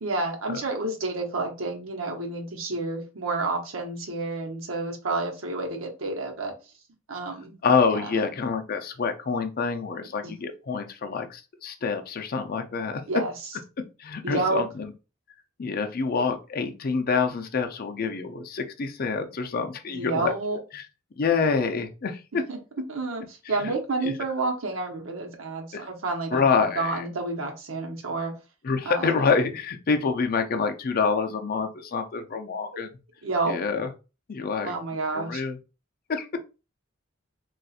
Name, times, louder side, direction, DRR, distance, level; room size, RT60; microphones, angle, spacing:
voice 1, 0.0-6.5 7.1-7.5 7.9-8.2 10.2-10.3 13.1-13.3 14.2-14.6 19.9-20.6 22.5-28.3 28.8-29.1 32.7-32.8 33.2-33.6 34.6-35.4, right 3 dB, 75° right, 1 dB, 0.9 m, -30 dB
voice 2, 7.6-13.1 14.0-14.9 15.6-20.3 20.7-20.9 21.2-22.4 23.6-23.7 24.0-24.1 25.7-25.9 26.3-27.0 28.6-32.9 33.5-33.9 34.3-34.8 35.1-35.6 36.1-36.3, left 5 dB, 50° left, 6 dB, 0.5 m, -27 dB
4.0 x 2.4 x 2.4 m, 0.30 s
head